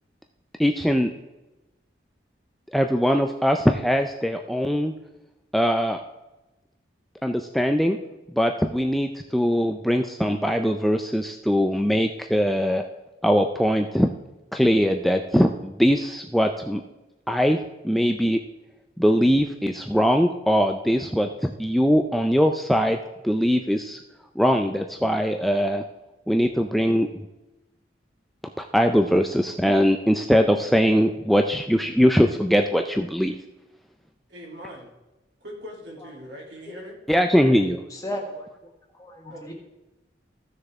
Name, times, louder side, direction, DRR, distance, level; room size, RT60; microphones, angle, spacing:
voice 1, 0.6-1.1 2.7-4.9 5.5-6.0 7.2-8.0 8.3-12.8 13.2-14.1 14.5-16.8 17.3-17.6 17.8-18.4 19.0-23.0 23.2-24.0 24.4-25.8 26.3-27.1 28.6-33.3 37.1-37.8, equal, ahead, 4 dB, 0.3 m, -21 dB
voice 2, 34.3-34.9 35.4-36.9 39.3-39.5, equal, 75° right, -2 dB, 2.9 m, -41 dB
voice 3, 37.9-39.5, left 1 dB, 20° left, 0 dB, 1.4 m, -36 dB
15.0 x 6.5 x 3.5 m, 1.0 s
head